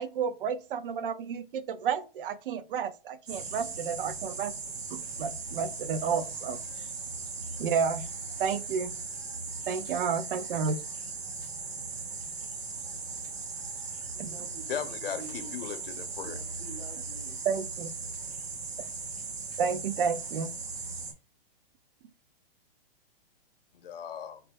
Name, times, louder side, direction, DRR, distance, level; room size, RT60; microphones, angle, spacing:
voice 1, 0.0-4.5 4.9-6.6 7.6-8.1 8.4-9.0 9.7-10.8 14.2-14.4 17.4-17.9 19.6-20.5, right 6 dB, 60° right, 0.6 m, -31 dB
sound 1, 3.3-21.1, right 4 dB, 85° right, 1.3 m, -38 dB
voice 2, 14.1-14.8 15.2-15.5 16.2-17.4, right 3 dB, 20° right, 0.6 m, -47 dB
voice 3, 14.7-16.4 23.7-24.4, left 9 dB, 65° left, 0.8 m, -37 dB
4.1 x 2.1 x 3.6 m
hypercardioid pair, 150°, 30 cm